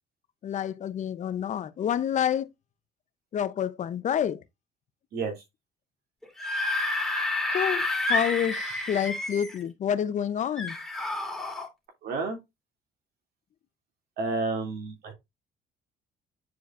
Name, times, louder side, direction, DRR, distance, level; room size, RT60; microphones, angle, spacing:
voice 1, 0.4-2.5 3.3-4.4 7.5-10.8, left 9 dB, 45° left, 0.7 m, -28 dB
Screaming / Screech, 6.2-9.6 10.6-11.7, left 2 dB, ahead, 2.5 m, -29 dB
voice 2, 12.0-12.4 14.2-15.1, right 3 dB, 70° right, 2.7 m, -30 dB
9.4 x 4.6 x 2.5 m
cardioid pair, 110°, 17 cm